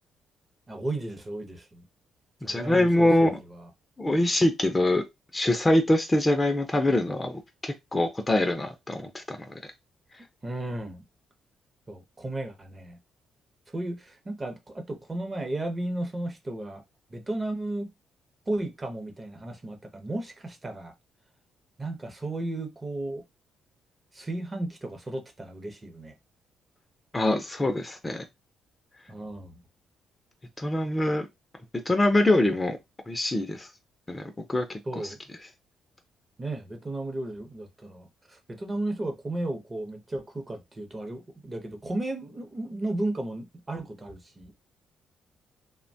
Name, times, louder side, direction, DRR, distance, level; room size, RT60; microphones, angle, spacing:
voice 1, 0.7-1.9 2.4-3.7 10.4-11.0 11.9-13.0 13.7-16.8 17.1-17.9 18.5-20.9 21.8-23.2 24.1-26.1 29.1-29.6 34.8-35.2 36.4-44.6, right 2 dB, 25° right, 0.7 m, -34 dB
voice 2, 2.5-3.4 4.0-5.0 5.3-9.6 27.1-28.2 30.6-31.3 31.9-32.8 33.1-33.7 34.1-34.7, left 1 dB, 20° left, 0.5 m, -24 dB
2.8 x 2.1 x 2.6 m
cardioid pair, 90°, 0 cm